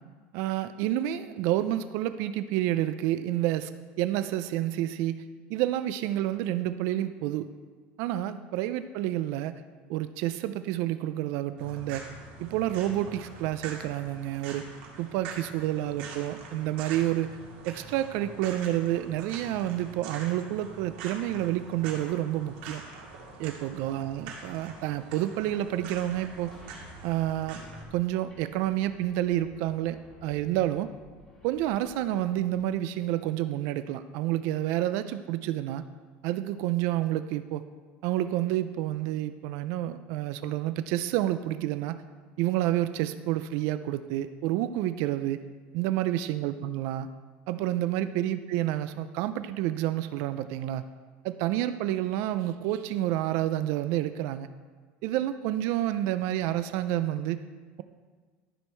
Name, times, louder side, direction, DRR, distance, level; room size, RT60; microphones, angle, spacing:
voice 1, 0.3-3.7 4.0-5.2 5.5-7.5 8.0-9.6 9.9-12.0 12.4-14.6 15.0-17.4 17.6-22.8 23.4-26.5 27.0-27.6 27.9-30.9 31.4-35.8 36.2-37.6 38.0-42.0 42.4-45.4 45.7-47.1 47.5-50.8 51.2-54.5 55.0-57.4, right 13 dB, 55° right, 12 dB, 0.4 m, -29 dB
sound 1, 11.6-27.8, right 4 dB, 85° right, 2.3 m, -44 dB
sound 2, 25.2-33.1, left 1 dB, 10° left, 2.6 m, -55 dB
12.5 x 6.3 x 4.4 m, 1.5 s
cardioid pair, 165°, 5 cm